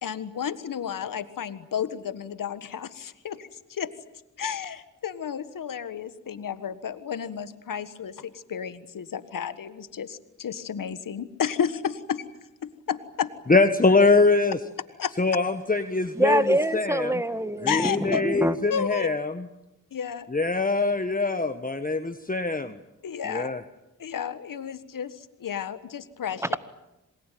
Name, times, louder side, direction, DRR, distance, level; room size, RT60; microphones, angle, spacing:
voice 1, 0.0-3.9 4.4-12.2 12.6-13.3 15.0-15.1 17.7-18.2 18.7-19.1 19.9-20.3 23.0-23.6 24.0-26.4, left 8 dB, 80° left, 12 dB, 1.6 m, -32 dB
voice 2, 13.5-14.6 15.2-16.4 16.7-17.1 17.6-19.4 20.3-22.8 23.2-23.6, left 3 dB, 25° left, 8 dB, 1.5 m, -23 dB
voice 3, 16.2-18.6 26.4-26.6, right 1 dB, 10° right, 12 dB, 1.8 m, -25 dB
27.5 x 20.0 x 9.2 m, 0.93 s
cardioid pair, 45°, 32 cm